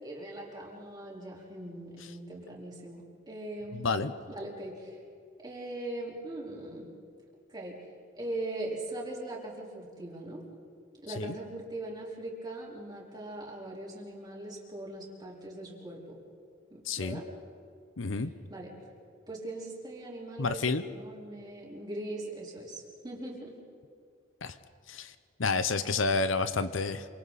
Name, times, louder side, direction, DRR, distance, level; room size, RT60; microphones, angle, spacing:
voice 1, 0.0-5.0 5.4-6.9 7.5-7.8 8.1-10.4 11.0-16.2 16.7-17.3 18.2-18.7 19.3-23.5, right 1 dB, 20° right, -4 dB, 4.3 m, -40 dB
voice 2, 3.7-4.1 11.2-11.3 16.9-17.2 18.0-18.3 20.4-20.8 24.4-24.6 24.9-25.1 25.4-27.1, left 4 dB, 70° left, 12 dB, 0.8 m, -29 dB
27.5 x 26.0 x 4.2 m, 2.3 s
head